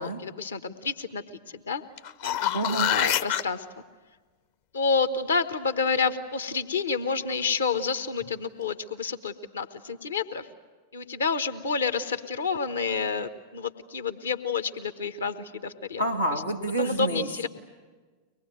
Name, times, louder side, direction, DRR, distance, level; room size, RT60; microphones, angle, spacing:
voice 1, 0.0-1.8 2.2-2.4 2.9-3.6 4.7-10.5 10.9-16.0 16.3-16.4 16.8-17.5, left 5 dB, 70° left, 10 dB, 1.2 m, -29 dB
sound 1, 2.0-3.4 8.2-8.3, left 10 dB, 50° left, 0.8 m, -26 dB
voice 2, 2.5-3.0 16.0-17.3, right 1 dB, 90° left, 0 dB, 1.9 m, -28 dB
24.0 x 20.5 x 9.1 m, 1.4 s
figure-of-eight pair, 90°, 0 cm